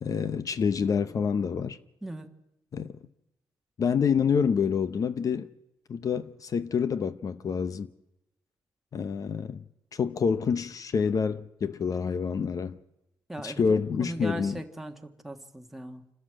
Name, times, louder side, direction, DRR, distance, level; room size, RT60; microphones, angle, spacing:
voice 1, 0.0-1.8 2.7-3.0 3.8-5.5 5.9-7.9 8.9-9.6 9.9-12.8 13.4-14.6, left 6 dB, 45° left, 0.8 m, -27 dB
voice 2, 13.3-16.1, right 1 dB, 5° right, 1.4 m, -38 dB
28.0 x 13.0 x 7.5 m
wide cardioid pair, 140°, 8 cm